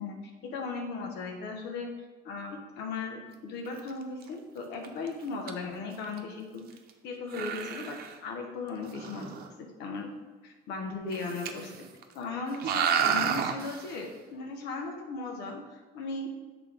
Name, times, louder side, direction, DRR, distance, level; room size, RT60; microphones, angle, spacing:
voice 1, 0.0-1.9 2.2-6.7 7.0-10.1 10.4-11.7 12.1-16.3, left 4 dB, 90° left, 2 dB, 1.1 m, -37 dB
sound 1, 3.7-3.9 4.2-4.3 4.8-5.1 5.5-5.6 5.8-5.9 6.0-6.2 6.7-6.9 7.3-8.2 8.8-9.5 11.1-11.8 12.0-12.1 12.5-13.9, right 7 dB, 65° right, 0.7 m, -31 dB
6.9 x 4.0 x 5.1 m, 1.3 s
cardioid pair, 110°, 17 cm